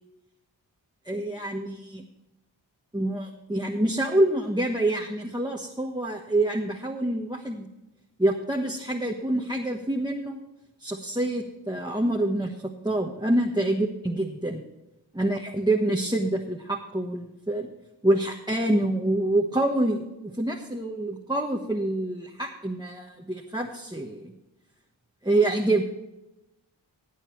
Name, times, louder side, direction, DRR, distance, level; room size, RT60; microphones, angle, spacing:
voice 1, 1.0-2.0 2.9-7.7 8.2-10.4 10.8-14.6 15.1-17.7 18.0-24.3 25.2-25.8, right 1 dB, 10° right, 0 dB, 1.2 m, -26 dB
16.5 x 9.1 x 3.2 m, 0.96 s
wide cardioid pair, 45°, 47 cm